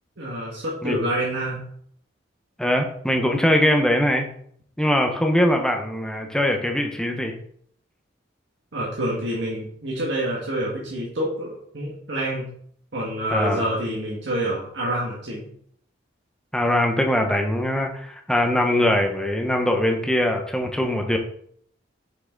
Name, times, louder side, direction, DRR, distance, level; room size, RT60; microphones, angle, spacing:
voice 1, 0.2-1.7 8.7-12.5 12.9-15.5, right 1 dB, 65° right, -5 dB, 1.7 m, -27 dB
voice 2, 2.6-4.3 4.8-7.3 13.3-13.6 16.5-21.2, left 1 dB, 5° left, 3 dB, 0.9 m, -22 dB
6.1 x 5.8 x 3.9 m, 0.63 s
head